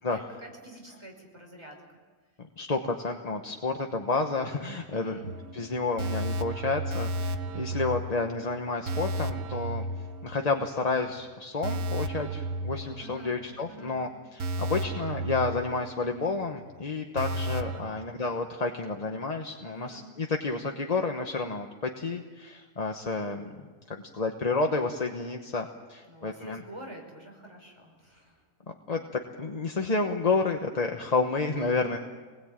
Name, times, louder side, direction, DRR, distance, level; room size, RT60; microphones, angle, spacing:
voice 1, 0.1-1.8 4.9-5.3 13.0-14.1 17.7-18.1 19.6-20.1 26.1-28.4 31.6-32.0, right 1 dB, 20° right, 1 dB, 5.7 m, -47 dB
voice 2, 2.6-5.2 5.5-9.8 10.2-23.5 23.9-26.6 28.9-29.0 29.4-32.0, left 3 dB, 30° left, 3 dB, 1.1 m, -30 dB
sound 1, 5.2-10.8 11.1-11.2 11.6-13.6 13.8-14.0 14.4-16.3 16.6-16.7 17.2-17.8, right 1 dB, 80° right, 1.6 m, -33 dB
26.0 x 20.5 x 8.9 m, 1.4 s
omnidirectional pair, 1.5 m